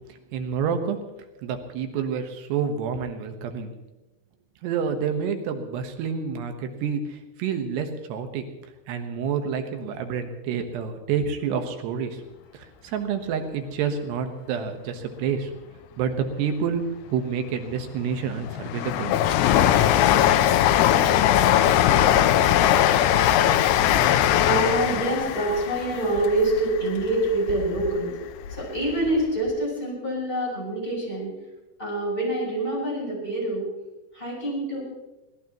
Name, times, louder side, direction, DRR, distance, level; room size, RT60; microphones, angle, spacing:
voice 1, 0.3-1.0 1.4-3.7 4.6-8.5 8.9-12.2 12.5-15.5 16.0-19.1, right 6 dB, 85° right, 6 dB, 3.4 m, -28 dB
Train, 17.7-27.9 28.3-29.2 29.5-29.6, left 11 dB, 85° left, 2.9 m, -21 dB
voice 2, 24.4-28.2 28.5-31.3 31.8-33.7 34.1-34.8, right 1 dB, 10° left, -4 dB, 8.1 m, -26 dB
24.0 x 18.5 x 3.1 m, 1.0 s
omnidirectional pair, 4.7 m